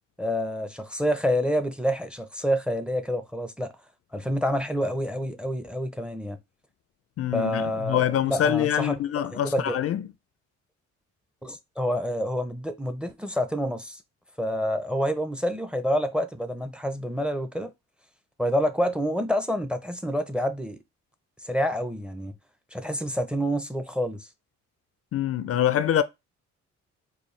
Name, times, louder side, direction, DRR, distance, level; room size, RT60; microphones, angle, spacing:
voice 1, 0.2-3.7 4.1-6.4 7.3-8.9 9.3-9.8 11.4-14.0 14.4-17.7 18.4-20.8 21.4-22.3 22.7-24.3, equal, 5° right, 0.6 m, -28 dB
voice 2, 7.2-10.1 25.1-26.0, left 10 dB, 50° left, 0.4 m, -25 dB
4.5 x 2.2 x 3.2 m
cardioid pair, 90°, 30 cm